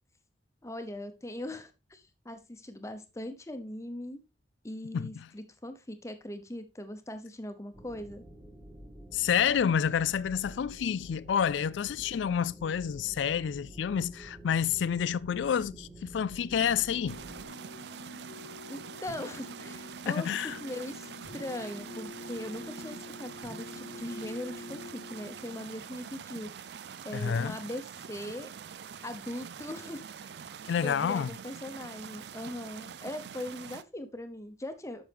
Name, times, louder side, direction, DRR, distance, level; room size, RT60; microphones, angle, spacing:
voice 1, 0.6-4.2 4.6-8.2 18.7-26.7 27.0-28.5 29.0-30.3 30.8-35.0, left 1 dB, 15° left, 0.9 m, -40 dB
voice 2, 4.9-5.3 9.1-17.2 20.1-20.6 27.1-27.6 30.7-31.3, left 8 dB, 80° left, 0.3 m, -29 dB
sound 1, 7.7-17.4, right 1 dB, 5° right, 1.5 m, -49 dB
sound 2, 16.9-25.6, left 2 dB, 60° left, 1.2 m, -46 dB
sound 3, 17.1-33.8, right 7 dB, 65° right, 0.4 m, -45 dB
9.1 x 6.4 x 3.5 m
head